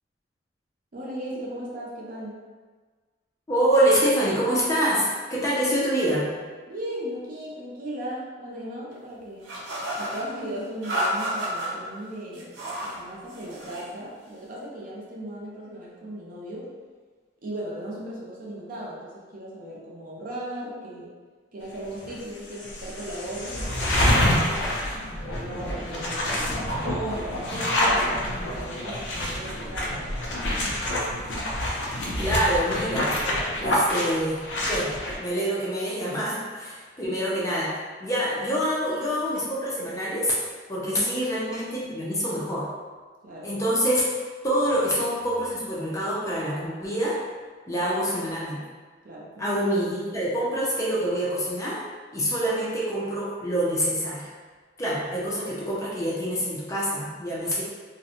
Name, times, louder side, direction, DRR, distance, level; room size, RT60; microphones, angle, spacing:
voice 1, 0.9-2.4 6.7-9.5 10.0-12.5 12.8-16.7 17.4-21.1 21.5-24.7 25.3-30.0 37.0-37.2 40.8-41.1 43.2-43.5 47.7-48.1 49.0-49.6, right 1 dB, 50° right, -5 dB, 0.5 m, -37 dB
voice 2, 3.5-6.3 32.2-33.1 33.6-34.9 35.2-40.4 40.7-42.7 43.4-44.0 44.4-47.2 47.7-48.6 49.4-51.8 52.1-54.3 54.8-57.6, equal, 15° left, -7 dB, 0.5 m, -26 dB
sound 1, 9.5-10.2 10.8-11.7 12.3-13.0 13.3-13.9, equal, 85° right, 0.7 m, -30 dB
sound 2, 22.0-22.1 22.5-35.2, left 1 dB, 85° left, 0.5 m, -27 dB
2.4 x 2.1 x 2.8 m, 1.4 s
head